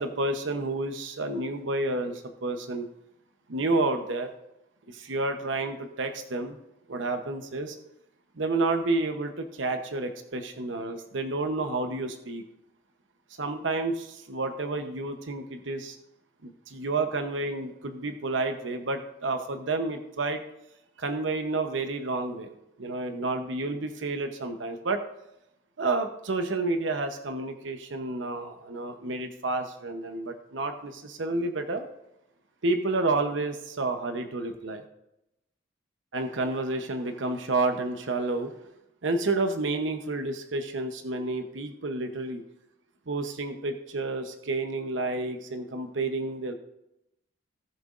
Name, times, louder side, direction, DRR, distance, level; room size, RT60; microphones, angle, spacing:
voice 1, 0.0-2.9 3.5-4.3 4.9-6.6 6.9-7.8 8.4-12.4 13.4-16.0 16.4-20.4 21.0-22.5 22.8-25.0 25.8-31.8 32.6-34.8 36.1-38.5 39.0-42.4 43.1-46.5, right 2 dB, 70° right, 6 dB, 0.9 m, -30 dB
18.0 x 6.7 x 2.5 m, 0.86 s
head